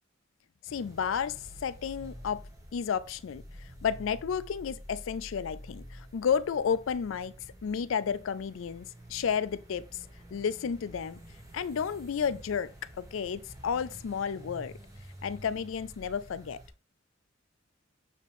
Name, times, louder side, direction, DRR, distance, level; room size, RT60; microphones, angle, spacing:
voice 1, 0.6-2.4 2.7-3.4 3.8-7.3 7.6-10.0 10.3-11.2 11.5-14.8 15.2-16.6, left 7 dB, 75° left, 0.4 m, -32 dB
sound 1, 0.7-16.7, equal, 15° right, 1.4 m, -49 dB
6.6 x 5.0 x 3.4 m
head